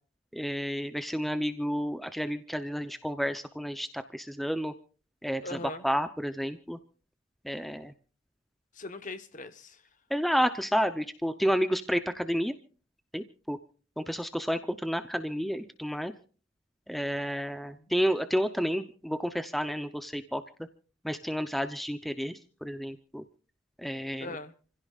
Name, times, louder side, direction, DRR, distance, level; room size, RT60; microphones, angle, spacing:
voice 1, 0.3-4.7 5.2-5.4 5.8-6.8 7.4-7.9 10.1-12.5 13.1-13.6 14.0-16.1 16.9-20.4 21.0-23.2 23.8-24.3, equal, ahead, 0.7 m, -30 dB
voice 2, 5.4-5.9 8.7-9.9 17.8-17.9 24.2-24.5, left 2 dB, 40° left, 1.1 m, -40 dB
29.0 x 16.0 x 2.4 m
head